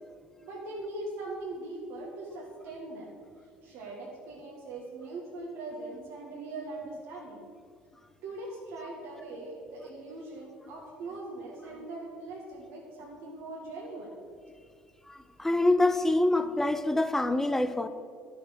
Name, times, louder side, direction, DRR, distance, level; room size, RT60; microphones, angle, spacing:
voice 1, 0.4-3.1 3.6-7.5 8.2-14.2, right 2 dB, 60° right, -3 dB, 1.8 m, -41 dB
voice 2, 15.1-17.9, left 2 dB, 10° left, 11 dB, 0.8 m, -26 dB
11.0 x 6.7 x 6.5 m, 2.2 s
hypercardioid pair, 60°, 5 cm